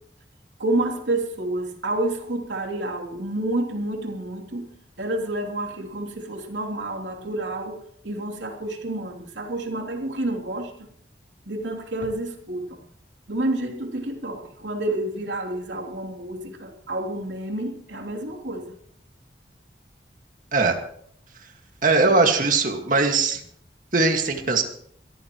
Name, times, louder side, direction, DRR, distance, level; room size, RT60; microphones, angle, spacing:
voice 1, 0.6-4.7 5.0-7.8 8.0-10.7 11.4-12.8 13.3-18.7, right 1 dB, 90° right, 2 dB, 3.2 m, -29 dB
voice 2, 21.8-23.4 23.9-24.6, right 3 dB, 45° right, 3 dB, 2.0 m, -20 dB
23.0 x 14.0 x 3.2 m, 0.66 s
head